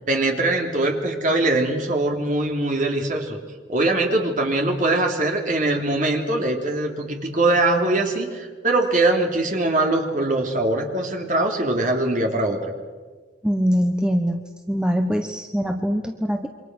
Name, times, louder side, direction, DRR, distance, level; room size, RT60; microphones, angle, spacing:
voice 1, 0.1-3.4 3.7-12.7, right 2 dB, 45° right, 2 dB, 3.3 m, -22 dB
voice 2, 13.4-14.4 14.7-16.5, equal, 5° right, 4 dB, 1.1 m, -22 dB
28.0 x 24.5 x 6.3 m, 1.4 s
head